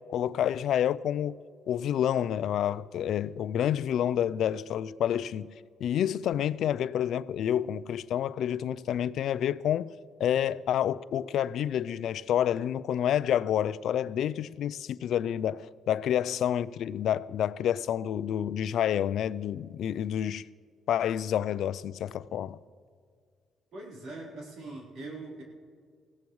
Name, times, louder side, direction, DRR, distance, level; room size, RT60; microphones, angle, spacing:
voice 1, 0.1-1.4 1.7-5.5 5.8-9.9 10.2-20.4 20.9-22.6, left 10 dB, 75° left, 0.4 m, -28 dB
voice 2, 23.7-25.4, right 2 dB, 75° right, 3.9 m, -42 dB
21.0 x 16.0 x 3.2 m
cardioid pair, 90°, 0 cm